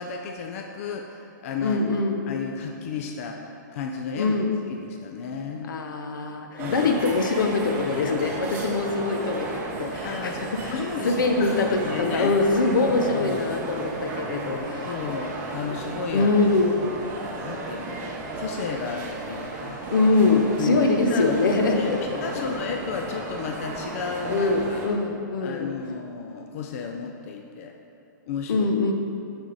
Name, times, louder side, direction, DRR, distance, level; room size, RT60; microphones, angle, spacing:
voice 1, 0.0-1.8 2.3-4.3 4.7-5.7 6.6-6.9 10.0-10.4 10.7-12.3 13.1-13.6 14.9-16.3 17.2-19.8 20.6-21.4 21.7-24.9 25.4-27.8 28.3-28.7, left 5 dB, 45° left, 3 dB, 0.4 m, -33 dB
voice 2, 1.6-2.2 4.2-4.5 5.7-10.8 11.0-14.9 16.1-16.7 19.9-22.4 24.3-25.7 28.5-28.9, left 3 dB, 80° left, 5 dB, 0.8 m, -23 dB
sound 1, 6.6-24.9, right 2 dB, 20° right, 0.7 m, -34 dB
6.3 x 6.2 x 4.0 m, 2.6 s
hypercardioid pair, 160°, 11 cm